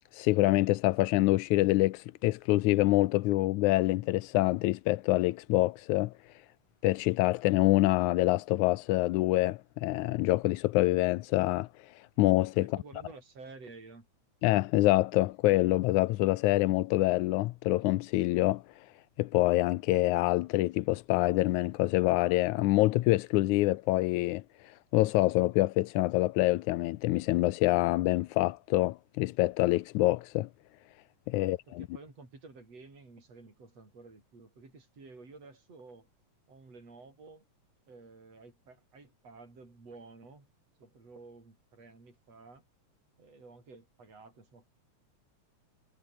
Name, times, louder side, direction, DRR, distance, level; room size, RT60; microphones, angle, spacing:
voice 1, 0.1-6.3 6.8-12.7 14.4-18.9 19.2-30.5 31.3-31.9, left 18 dB, 90° left, 2.1 m, -26 dB
voice 2, 12.6-14.1 31.4-36.1 36.5-37.4 37.9-40.5 40.8-42.6 43.2-44.6, right 3 dB, 55° right, 8.3 m, -52 dB
omnidirectional pair, 3.4 m